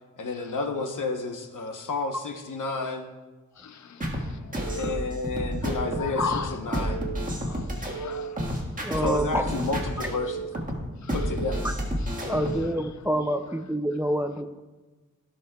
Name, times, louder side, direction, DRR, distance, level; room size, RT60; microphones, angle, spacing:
voice 1, 0.2-3.1 4.7-6.2 6.5-7.0 9.0-10.5 11.1-11.7, left 3 dB, 85° left, 0.9 m, -31 dB
voice 2, 3.6-5.2 5.6-6.8 7.4-8.9 9.2-9.3 11.0-11.3 12.0-13.6, left 6 dB, 65° left, 0.5 m, -39 dB
sound 1, 4.0-12.7, right 1 dB, 25° right, 1.5 m, -30 dB
voice 3, 8.8-9.4 12.3-14.6, equal, 10° right, 0.3 m, -27 dB
15.5 x 6.3 x 2.3 m
wide cardioid pair, 105°, 31 cm